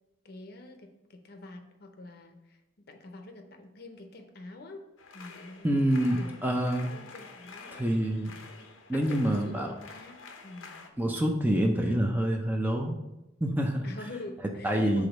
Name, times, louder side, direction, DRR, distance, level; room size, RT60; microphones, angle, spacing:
voice 1, 0.2-2.6 2.9-4.9 5.1-5.8 6.0-6.4 6.9-7.9 8.6-8.7 8.9-10.9 11.8-12.0 13.8-15.1, left 2 dB, 50° left, 5 dB, 0.7 m, -46 dB
sound 1, 5.0-10.9, left 4 dB, 90° left, 0.8 m, -48 dB
voice 2, 5.6-6.9 7.7-8.3 8.9-9.7 11.0-13.0 13.4-13.9 14.6-15.1, right 1 dB, 10° right, 2 dB, 0.5 m, -26 dB
4.9 x 3.9 x 5.2 m, 0.94 s
head